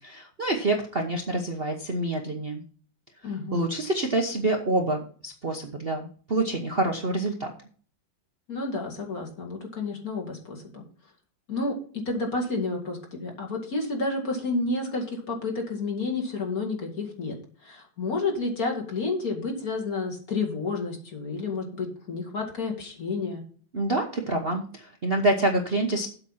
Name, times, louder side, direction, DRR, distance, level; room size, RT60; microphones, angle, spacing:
voice 1, 0.0-2.6 3.5-7.5 23.7-26.1, right 2 dB, 40° right, 2 dB, 0.9 m, -27 dB
voice 2, 3.2-3.6 8.5-10.8 11.5-11.7 12.1-17.4 17.6-23.4, left 3 dB, 45° left, 1 dB, 2.5 m, -30 dB
8.1 x 7.0 x 5.7 m, 0.44 s
omnidirectional pair, 2.2 m